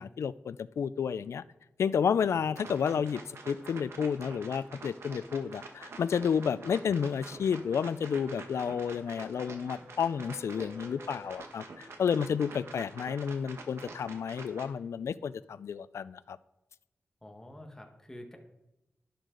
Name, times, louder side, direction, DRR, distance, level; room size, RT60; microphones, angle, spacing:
voice 1, 0.0-1.4 1.8-16.4, left 7 dB, 80° left, 16 dB, 0.4 m, -31 dB
voice 2, 2.3-2.7 17.2-18.4, left 1 dB, 10° left, 2 dB, 1.5 m, -48 dB
sound 1, 2.5-14.7, right 3 dB, 70° right, 1.2 m, -47 dB
sound 2, 5.1-11.3, equal, 45° right, 1.4 m, -56 dB
11.0 x 11.0 x 3.9 m, 0.96 s
wide cardioid pair, 135°, 5 cm